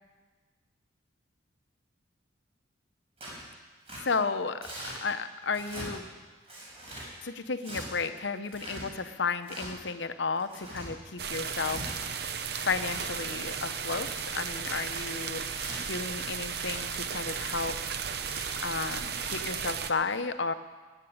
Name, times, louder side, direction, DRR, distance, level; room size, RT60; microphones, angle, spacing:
Tearing, 3.2-3.4 3.9-4.0 4.6-5.0 5.5-5.9 6.5-7.1 7.6-7.8 8.4-8.8 9.4-9.7 10.4-10.9 11.5-11.9 12.5-13.1 13.6-14.1 14.6-15.0 15.5-15.8 16.5-16.8 17.3-17.6 18.2-18.4 19.0-19.4, right 1 dB, 30° right, 5.7 m, -42 dB
voice 1, 4.0-6.0 7.2-17.8 18.3-20.5, left 4 dB, 70° left, 10 dB, 0.8 m, -33 dB
sound 1, 11.2-19.9, right 7 dB, 55° right, 0.8 m, -35 dB
15.0 x 9.9 x 8.6 m, 1.4 s
head